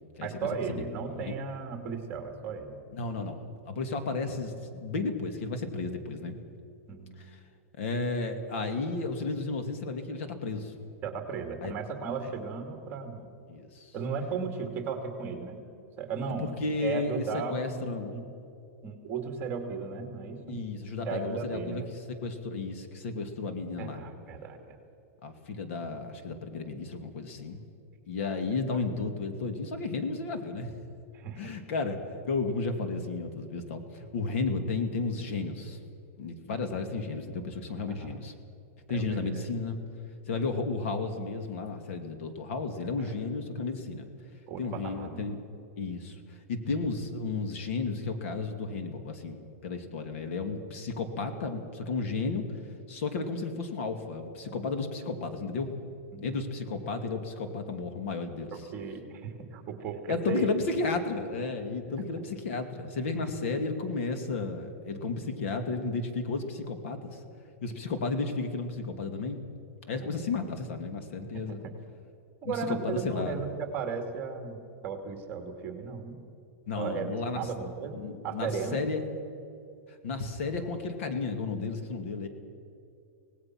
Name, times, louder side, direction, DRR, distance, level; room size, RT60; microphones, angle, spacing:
voice 1, 0.2-2.8 6.9-7.2 11.0-13.3 13.9-15.6 16.0-16.5 16.8-18.2 18.8-20.6 21.0-21.9 23.8-24.8 28.7-28.8 31.1-31.6 37.9-38.2 38.9-39.5 43.0-43.1 44.5-45.2 56.1-56.3 58.5-60.5 70.0-70.3 71.5-71.7 72.4-76.2 76.8-78.0 78.2-78.8, right 5 dB, 25° right, 5 dB, 2.4 m, -36 dB
voice 2, 2.9-6.4 7.3-7.4 7.8-10.7 11.6-11.7 13.5-14.0 16.4-18.1 20.5-21.8 22.2-24.0 25.2-27.6 28.1-30.7 31.4-35.8 36.2-38.3 38.9-39.9 40.3-44.1 44.6-45.4 45.8-46.2 46.5-52.4 52.9-55.7 56.2-58.6 60.1-67.2 67.6-69.4 69.9-71.6 72.4-73.4 76.7-77.5 77.9-79.0 80.0-82.3, left 3 dB, 60° left, 7 dB, 2.6 m, -33 dB
25.5 x 18.5 x 6.1 m, 2.6 s
supercardioid pair, 165°, 8 cm